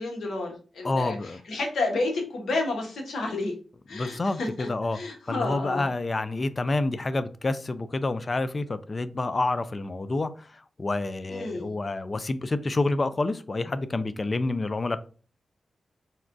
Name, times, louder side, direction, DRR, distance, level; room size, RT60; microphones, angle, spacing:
voice 1, 0.0-3.5 3.9-5.9 11.3-11.7, left 2 dB, 80° left, 0.9 m, -31 dB
voice 2, 0.8-1.4 3.9-5.0 5.3-15.0, left 2 dB, 45° left, 0.3 m, -28 dB
4.1 x 2.2 x 2.5 m
cardioid pair, 50°, 0 cm